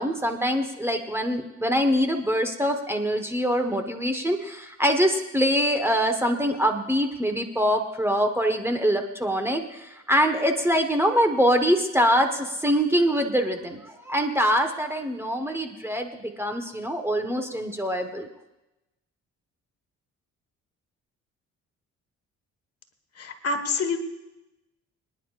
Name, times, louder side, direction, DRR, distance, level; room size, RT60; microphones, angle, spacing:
voice 1, 0.0-18.3, equal, 10° right, 5 dB, 1.3 m, -24 dB
voice 2, 23.2-24.0, left 4 dB, 50° left, 6 dB, 1.6 m, -27 dB
26.0 x 10.0 x 2.5 m, 0.96 s
cardioid pair, 90°, 30 cm